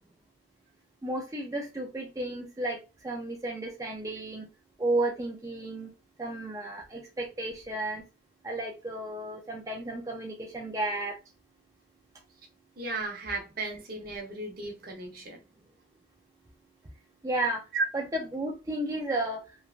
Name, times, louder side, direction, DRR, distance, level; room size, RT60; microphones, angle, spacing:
voice 1, 1.0-4.5 4.8-5.9 6.2-8.0 8.4-11.2 17.2-17.7 17.9-19.4, right 1 dB, 20° right, 0.4 m, -33 dB
voice 2, 12.8-15.4 17.7-17.8, right 3 dB, 55° right, 0.9 m, -34 dB
3.1 x 2.2 x 2.4 m
head